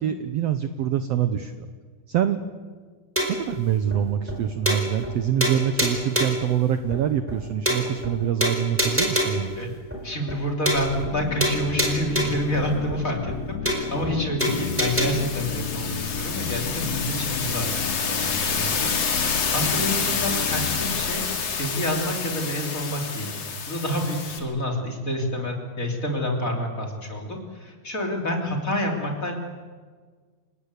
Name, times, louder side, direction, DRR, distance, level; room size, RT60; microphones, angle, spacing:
voice 1, 0.0-1.7 2.1-2.4 3.4-9.6, right 9 dB, 75° right, 10 dB, 1.5 m, -25 dB
sound 1, 3.2-3.5 3.9-4.0 4.3-4.4 4.7-5.1 5.4-6.5 6.9-7.0 7.3-7.4 7.7-8.1 8.4-9.5 9.9-10.0 10.3-10.4 10.7-11.1 11.4-12.5 12.9-13.0 13.3-13.4 13.7-14.1 14.4-15.1, equal, 5° right, 4.3 m, -25 dB
voice 2, 10.0-21.2 21.5-23.3 23.7-29.4, equal, 25° left, 1 dB, 3.2 m, -28 dB
sound 2, 10.7-22.5, left 7 dB, 65° left, 1.7 m, -33 dB
sound 3, 14.4-24.4, left 5 dB, 50° left, 3.2 m, -28 dB
28.5 x 18.5 x 8.3 m, 1.5 s
omnidirectional pair, 4.1 m